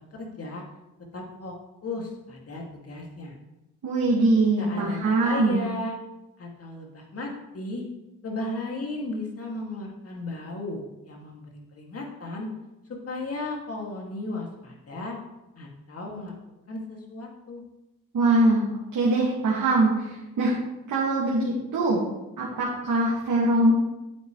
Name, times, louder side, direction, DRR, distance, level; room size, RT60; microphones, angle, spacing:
voice 1, 0.1-0.6 1.1-1.5 1.8-3.4 4.6-6.0 6.4-7.8 8.2-10.8 11.1-12.5 12.9-15.2 15.6-16.3 16.7-17.6, left 2 dB, 50° left, 0 dB, 2.4 m, -35 dB
voice 2, 3.8-5.6 18.1-18.6 18.9-20.5 20.9-22.0 22.4-23.7, right 2 dB, 70° right, -5 dB, 2.2 m, -22 dB
10.0 x 8.3 x 3.2 m, 0.98 s
cardioid pair, 80°, 32 cm